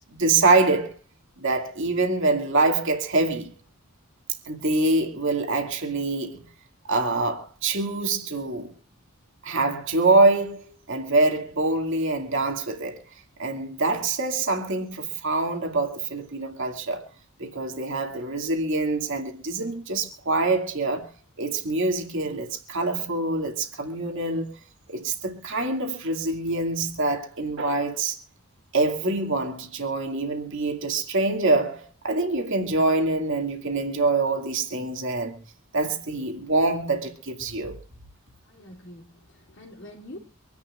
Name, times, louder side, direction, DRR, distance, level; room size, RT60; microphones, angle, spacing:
voice 1, 0.1-1.0 1.4-3.5 4.5-6.5 6.8-8.7 9.4-13.0 13.4-17.1 17.4-21.1 21.4-24.5 24.9-28.2 28.7-35.4 35.7-37.8, right 3 dB, 60° right, 2.3 m, -25 dB
voice 2, 38.5-40.2, left 1 dB, 55° left, 2.7 m, -45 dB
26.0 x 10.5 x 2.5 m
head